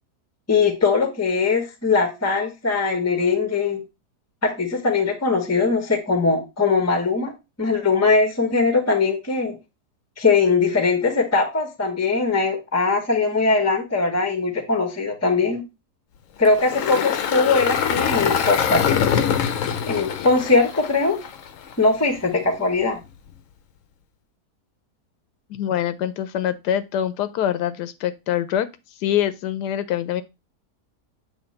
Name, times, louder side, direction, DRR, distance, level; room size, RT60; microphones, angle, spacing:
voice 1, 0.5-3.8 4.4-9.6 10.2-15.6 16.4-19.2 19.9-21.2 21.8-23.0, left 4 dB, 15° left, 0.6 m, -21 dB
Engine, 16.5-21.7, left 8 dB, 65° left, 0.9 m, -23 dB
voice 2, 25.5-28.7 29.0-30.2, left 10 dB, 85° left, 1.2 m, -24 dB
7.2 x 3.2 x 4.1 m
omnidirectional pair, 1.7 m